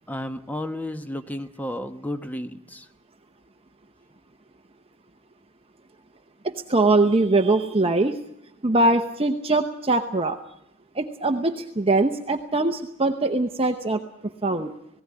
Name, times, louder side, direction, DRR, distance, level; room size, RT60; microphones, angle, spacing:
voice 1, 0.1-2.9, left 1 dB, 5° left, 8 dB, 1.1 m, -32 dB
voice 2, 6.4-8.2 8.6-10.4 10.9-14.0 14.4-14.7, right 2 dB, 25° right, 5 dB, 0.8 m, -22 dB
19.0 x 16.5 x 9.8 m, 0.77 s
head